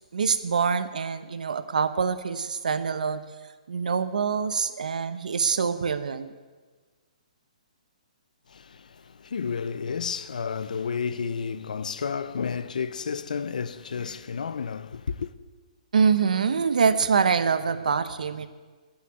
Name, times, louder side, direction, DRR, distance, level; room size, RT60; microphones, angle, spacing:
voice 1, 0.1-3.2 3.7-6.3 15.9-18.5, right 6 dB, 75° right, 1.0 m, -25 dB
voice 2, 8.5-15.3, left 6 dB, 75° left, 0.7 m, -31 dB
14.0 x 7.3 x 8.8 m
hypercardioid pair, 170°, 4 cm